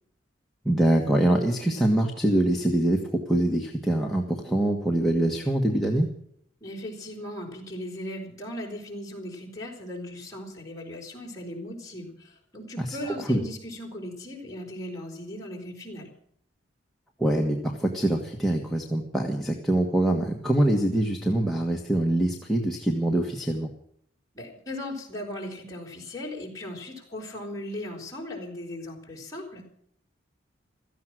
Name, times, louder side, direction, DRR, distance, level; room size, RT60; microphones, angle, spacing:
voice 1, 0.6-3.0 3.2-6.1 12.8-13.4 17.2-23.7, right 1 dB, ahead, -1 dB, 1.5 m, -24 dB
voice 2, 6.6-16.1 24.3-29.7, left 1 dB, 20° left, -2 dB, 4.6 m, -38 dB
16.5 x 14.0 x 6.3 m, 0.67 s
head